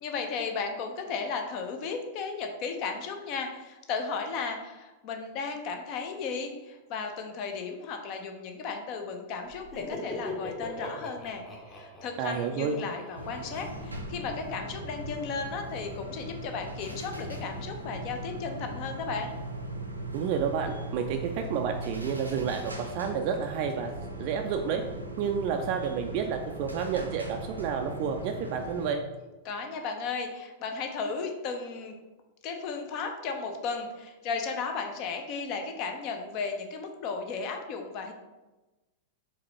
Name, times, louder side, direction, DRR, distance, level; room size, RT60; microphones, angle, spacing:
voice 1, 0.0-11.4 11.7-19.3 29.4-32.0 32.4-38.1, left 5 dB, 40° left, 4 dB, 0.7 m, -35 dB
Laughter, 9.5-14.2, left 1 dB, 20° left, 1.1 m, -41 dB
voice 2, 12.2-12.8 20.1-23.9 24.2-24.8 25.2-29.0, right 7 dB, 45° right, 4 dB, 0.3 m, -30 dB
sound 1, 13.1-28.9, right 1 dB, 85° right, 0.6 m, -39 dB
4.7 x 3.6 x 3.1 m, 1.1 s
figure-of-eight pair, 95°, 0 cm